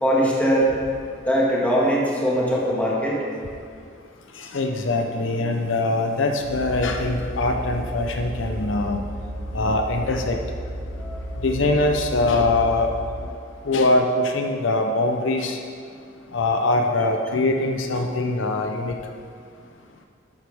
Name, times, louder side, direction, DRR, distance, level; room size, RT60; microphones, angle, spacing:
voice 1, 0.0-0.8 1.3-3.2 11.0-11.3, equal, 5° left, -5 dB, 1.9 m, -21 dB
voice 2, 4.4-9.0 9.5-10.4 11.4-12.9 13.7-15.6 16.3-19.0, left 2 dB, 70° left, 4 dB, 0.7 m, -22 dB
sound 1, 6.4-13.3, equal, 60° right, 1.7 m, -33 dB
12.0 x 9.6 x 3.5 m, 2.2 s
head